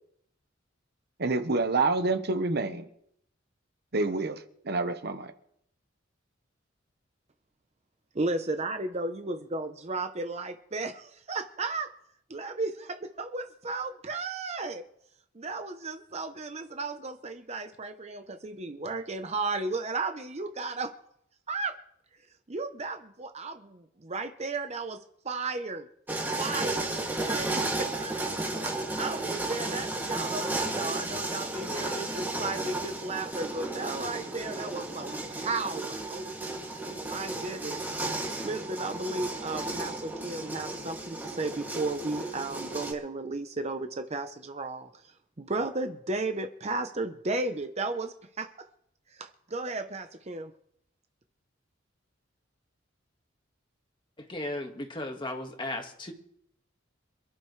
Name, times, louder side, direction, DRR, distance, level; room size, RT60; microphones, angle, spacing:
voice 1, 1.2-2.9 3.9-5.3, right 3 dB, 55° right, 1.1 m, -28 dB
voice 2, 8.1-11.9 12.3-14.8 15.3-20.9 21.5-21.7 22.5-25.0 25.2-25.9 26.4-28.2 28.6-36.3 36.8-44.9 45.4-48.5 49.2-50.5, right 3 dB, 35° right, 0.8 m, -34 dB
sound 1, 26.1-42.9, right 2 dB, 10° right, 2.4 m, -33 dB
voice 3, 54.3-56.1, left 1 dB, 25° left, 1.7 m, -35 dB
27.5 x 12.0 x 3.3 m
head